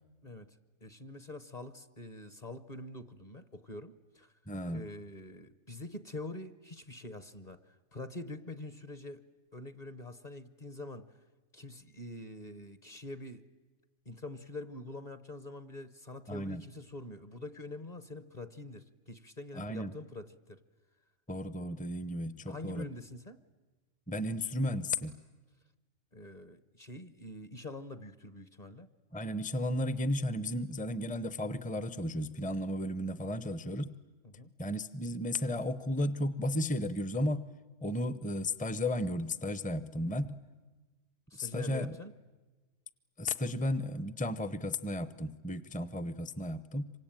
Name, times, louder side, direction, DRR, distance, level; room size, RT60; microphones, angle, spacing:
voice 1, 0.2-4.3 4.7-9.2 9.5-11.1 11.5-13.4 14.0-20.6 22.5-23.4 26.1-28.9 34.2-34.5 41.3-42.1, left 2 dB, 35° left, 13 dB, 1.0 m, -45 dB
voice 2, 4.5-4.9 16.3-16.6 19.5-19.9 21.3-22.9 24.1-25.2 29.1-33.9 34.6-37.5 37.8-40.4 41.4-42.0 43.2-46.9, left 1 dB, 10° left, 15 dB, 0.6 m, -34 dB
27.0 x 24.5 x 9.0 m, 1.2 s
omnidirectional pair, 1.3 m